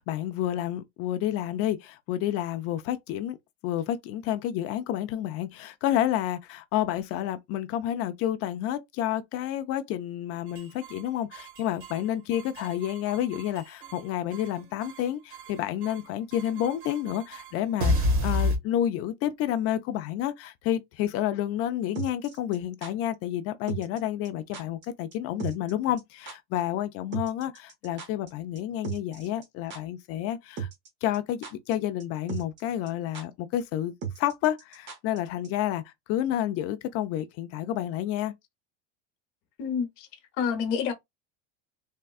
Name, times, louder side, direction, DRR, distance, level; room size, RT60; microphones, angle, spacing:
voice 1, 0.0-3.4 3.6-30.7 31.0-38.3, left 11 dB, 45° left, 0.4 m, -30 dB
sound 1, 10.5-11.0 11.3-12.0 12.3-14.0 14.3-15.0 15.3-16.0 16.3-18.6, left 1 dB, 65° right, 1.7 m, -30 dB
sound 2, 21.9-22.9 23.7-24.0 24.2-24.3 24.5-24.9 25.1-25.2 25.4-25.7 26.0-26.1 26.3-26.4 27.1-28.3 28.6-28.7 28.8-29.4 29.7-29.8 30.6-30.9 31.1-31.7 32.0-32.1 32.3-32.6 32.9-33.0 33.1-33.2 34.0-35.2 35.4-35.5, right 7 dB, 35° right, 0.9 m, -36 dB
voice 2, 39.6-40.1 40.4-40.9, left 7 dB, 65° left, 1.0 m, -28 dB
3.5 x 2.2 x 2.3 m
supercardioid pair, 145°, 34 cm